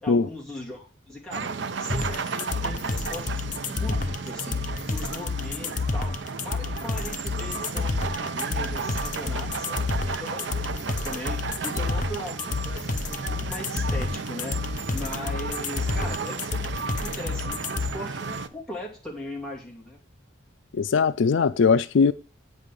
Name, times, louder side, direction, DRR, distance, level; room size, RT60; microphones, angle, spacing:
voice 1, 0.0-1.5 1.8-4.6 4.9-14.6 14.9-20.0, left 1 dB, 5° left, 2.4 m, -39 dB
sound 1, 1.3-18.5, right 4 dB, 65° right, 0.6 m, -33 dB
sound 2, 1.9-17.9, left 4 dB, 40° left, 0.7 m, -29 dB
voice 2, 20.7-22.1, left 5 dB, 75° left, 0.4 m, -20 dB
8.2 x 5.3 x 6.8 m
head